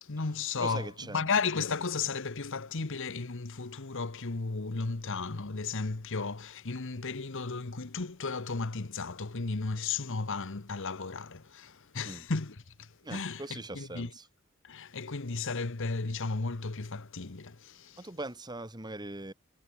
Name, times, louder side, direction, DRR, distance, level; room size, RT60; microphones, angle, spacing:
voice 1, 0.0-14.1 14.6-18.0, left 4 dB, 60° left, 1.1 m, -34 dB
voice 2, 0.6-1.3 12.0-12.2 13.0-14.3 18.0-19.3, right 2 dB, 20° right, 2.5 m, -41 dB
head